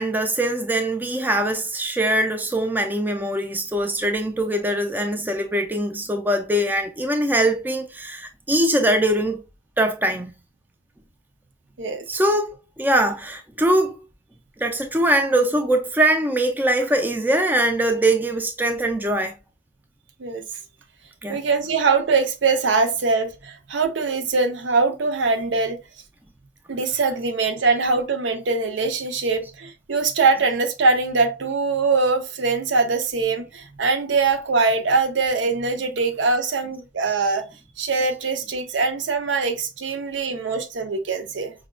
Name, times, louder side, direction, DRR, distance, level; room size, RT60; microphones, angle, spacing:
voice 1, 0.0-9.4 9.8-10.3 12.1-14.0 14.6-19.3 21.2-21.4, right 1 dB, 10° right, 0.4 m, -22 dB
voice 2, 21.3-25.8 26.7-37.4 37.8-41.5, right 4 dB, 75° right, 0.6 m, -22 dB
4.9 x 2.2 x 2.4 m
head